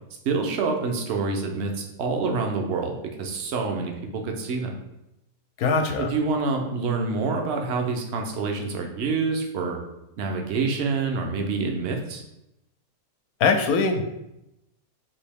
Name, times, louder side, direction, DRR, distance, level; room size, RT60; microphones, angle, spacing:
voice 1, 0.2-4.8 6.0-9.8 10.2-12.2, right 4 dB, 55° right, 3 dB, 0.8 m, -27 dB
voice 2, 5.6-6.1 13.4-14.1, left 4 dB, 85° left, 6 dB, 1.1 m, -22 dB
5.3 x 2.8 x 3.4 m, 0.88 s
omnidirectional pair, 1.6 m